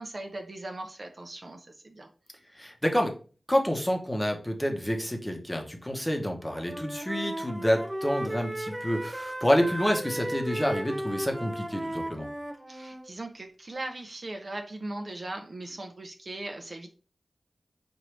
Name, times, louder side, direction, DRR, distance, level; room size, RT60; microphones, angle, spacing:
voice 1, 0.0-2.1 12.7-16.9, right 2 dB, 50° right, 4 dB, 0.6 m, -39 dB
voice 2, 2.5-3.2 3.5-12.3, equal, 10° left, 3 dB, 0.9 m, -28 dB
Wind instrument woodwind instrument, 6.3-13.0, right 1 dB, 20° right, 0.8 m, -35 dB
4.6 x 2.6 x 3.2 m, 0.38 s
cardioid pair, 55°, 0 cm